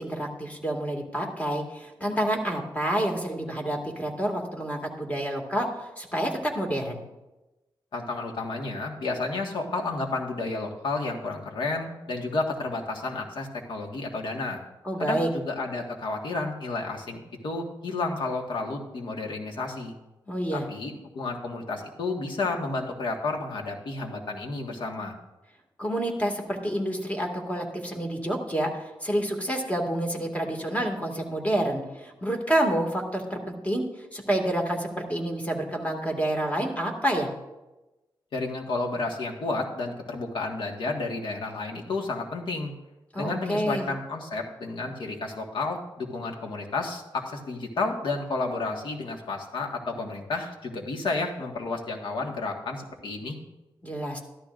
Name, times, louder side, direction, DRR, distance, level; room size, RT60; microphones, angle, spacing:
voice 1, 0.0-7.0 14.8-15.3 20.3-20.7 25.8-33.8 34.1-37.3 43.1-43.9 53.8-54.2, right 1 dB, 15° left, 2 dB, 2.1 m, -28 dB
voice 2, 7.9-14.6 15.0-19.9 20.5-25.1 38.3-42.7 43.2-53.3, left 3 dB, 70° left, 1 dB, 1.6 m, -31 dB
13.5 x 12.0 x 2.5 m, 1.0 s
cardioid pair, 85°, 8 cm